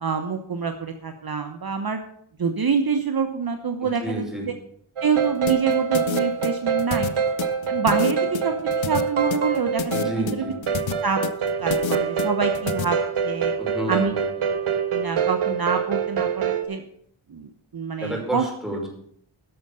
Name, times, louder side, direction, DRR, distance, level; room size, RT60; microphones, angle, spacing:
voice 1, 0.0-2.0 2.4-4.5 5.0-7.1 7.6-10.5 11.0-11.2 11.6-13.0 13.2-13.5 13.9-14.1 14.9-16.8 17.3-18.4, right 5 dB, 45° right, 6 dB, 1.1 m, -26 dB
voice 2, 3.8-4.5 9.9-10.6 13.6-14.3 18.0-18.9, right 1 dB, ahead, 0 dB, 5.3 m, -30 dB
sound 1, 5.0-16.6, right 6 dB, 85° right, 1.3 m, -25 dB
sound 2, 5.5-12.8, left 9 dB, 65° left, 0.8 m, -29 dB
11.5 x 6.6 x 6.8 m, 0.68 s
cardioid pair, 50°, 49 cm